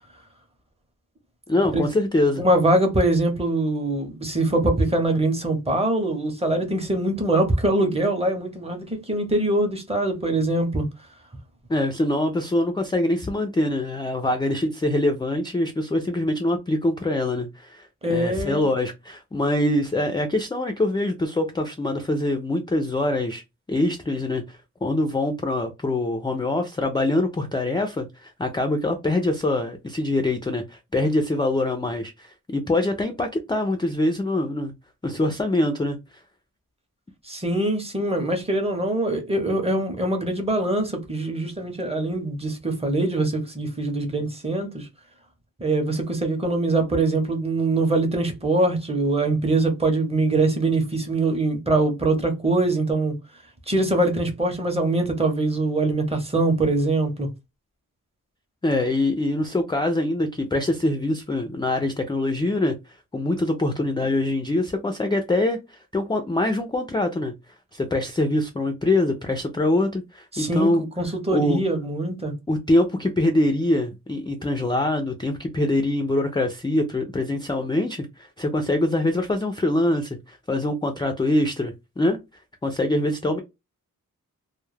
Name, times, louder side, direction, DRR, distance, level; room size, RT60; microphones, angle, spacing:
voice 1, 1.5-2.4 11.7-23.4 23.7-34.7 35.0-36.0 58.6-62.7 63.1-67.3 67.7-70.8 71.3-71.6 72.5-82.2 82.6-83.4, left 1 dB, 15° left, 0.3 m, -24 dB
voice 2, 2.4-10.9 18.0-18.7 37.3-44.9 45.6-53.2 53.7-57.3 70.3-72.3, right 2 dB, 20° right, 0.7 m, -23 dB
2.2 x 2.1 x 3.1 m
wide cardioid pair, 125°, 34 cm